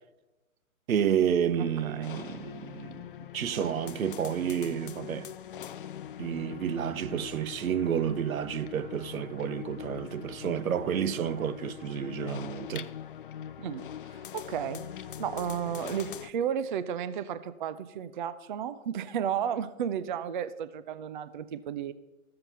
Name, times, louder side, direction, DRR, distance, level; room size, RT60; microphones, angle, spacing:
voice 1, 0.9-3.1 3.3-5.3 6.2-12.9, right 8 dB, 75° right, 0.7 m, -30 dB
sound 1, 1.6-16.3, left 9 dB, 40° left, 0.4 m, -42 dB
voice 2, 1.6-2.1 13.6-14.8 15.2-21.9, right 8 dB, 40° right, 0.4 m, -33 dB
13.5 x 7.7 x 5.5 m
hypercardioid pair, 135°, 42 cm